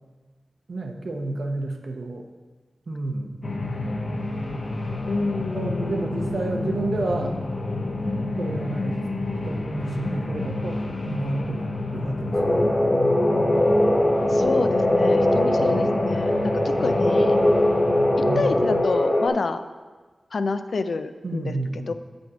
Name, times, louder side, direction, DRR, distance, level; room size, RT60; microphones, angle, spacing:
voice 1, 0.7-2.3 2.9-3.5 5.5-7.4 8.4-9.0 9.4-12.8 18.2-18.4 21.2-21.9, right 2 dB, 65° right, 3 dB, 0.8 m, -30 dB
sound 1, 3.4-18.8, left 2 dB, 55° left, 0.9 m, -29 dB
voice 2, 5.1-6.1 14.3-17.4 18.4-19.6 20.3-21.9, left 4 dB, 75° left, 10 dB, 0.4 m, -28 dB
sound 2, 12.3-19.3, left 1 dB, 25° left, 1.0 m, -21 dB
7.9 x 5.2 x 4.8 m, 1.3 s
wide cardioid pair, 95°, 0 cm